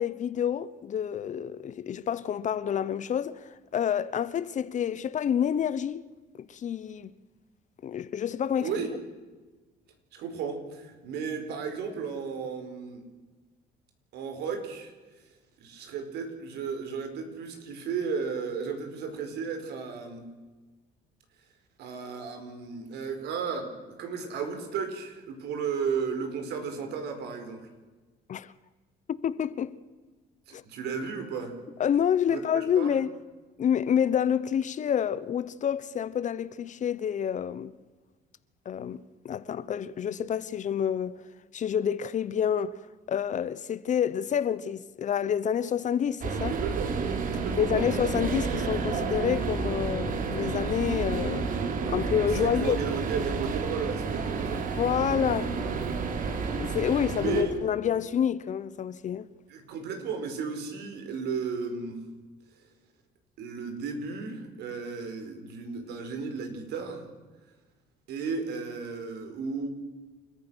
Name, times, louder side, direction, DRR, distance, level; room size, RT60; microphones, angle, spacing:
voice 1, 0.0-3.4 3.7-6.0 6.5-7.1 7.8-8.7 28.3-28.5 29.1-29.7 30.5-30.6 31.8-33.1 33.6-37.7 38.6-41.2 41.5-42.8 43.1-46.5 47.6-51.5 51.9-52.8 54.8-55.6 56.6-59.3, left 8 dB, 45° left, 1.0 m, -28 dB
voice 2, 8.6-8.9 10.1-13.0 14.1-14.9 15.6-20.2 21.8-27.7 30.5-31.6 32.3-32.4 32.7-33.0 46.5-47.0 47.3-47.7 52.4-54.7 56.6-56.8 57.1-57.6 59.5-62.0 63.4-67.1 68.1-69.7, right 5 dB, 80° right, 4.8 m, -34 dB
sound 1, 46.2-57.4, right 5 dB, 55° right, 3.2 m, -30 dB
29.0 x 14.0 x 6.4 m
cardioid pair, 110°, 17 cm